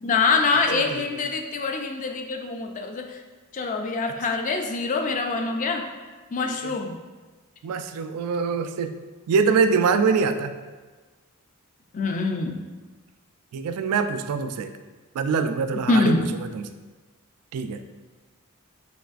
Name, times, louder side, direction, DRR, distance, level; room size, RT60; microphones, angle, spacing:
voice 1, 0.0-3.2 3.5-5.9 6.3-6.9 11.9-12.6 15.9-16.3, left 3 dB, 35° left, 4 dB, 0.4 m, -24 dB
voice 2, 0.7-1.3 6.5-6.7 7.6-9.0 9.3-10.5 13.5-14.7 15.1-16.7 17.5-17.8, right 5 dB, 75° right, 9 dB, 0.3 m, -24 dB
6.1 x 3.2 x 2.4 m, 1.3 s
head